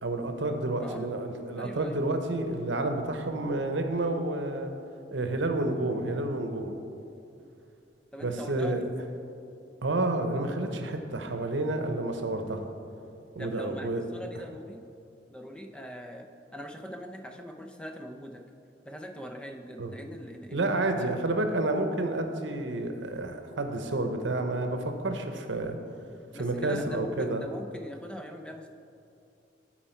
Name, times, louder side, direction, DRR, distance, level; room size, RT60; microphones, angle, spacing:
voice 1, 0.0-4.7 5.1-6.7 8.2-8.8 9.8-12.7 13.4-14.0 19.8-19.9 20.5-25.8 26.4-27.4, right 2 dB, 85° right, 6 dB, 0.8 m, -30 dB
voice 2, 0.7-1.1 1.6-2.0 8.1-8.9 13.3-14.8 15.3-16.3 16.5-18.4 18.9-21.1 26.3-28.7, equal, 5° left, 4 dB, 0.5 m, -42 dB
13.5 x 4.5 x 4.4 m, 2.6 s
head